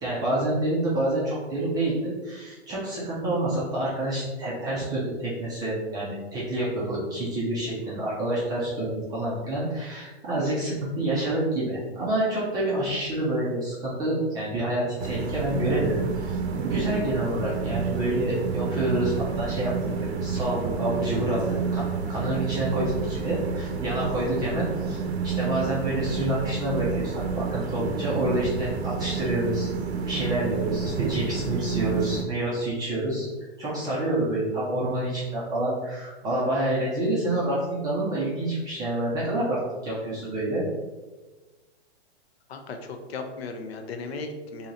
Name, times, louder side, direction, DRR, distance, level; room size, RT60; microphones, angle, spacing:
voice 1, 0.0-16.4 16.7-29.7 30.0-33.3 33.6-40.6, right 1 dB, 10° right, -7 dB, 0.4 m, -28 dB
sound 1, 15.0-32.2, right 5 dB, 75° right, 0.6 m, -29 dB
voice 2, 42.5-44.7, left 3 dB, 65° left, 5 dB, 0.7 m, -36 dB
3.0 x 2.8 x 3.8 m, 1.2 s
hypercardioid pair, 145°, 33 cm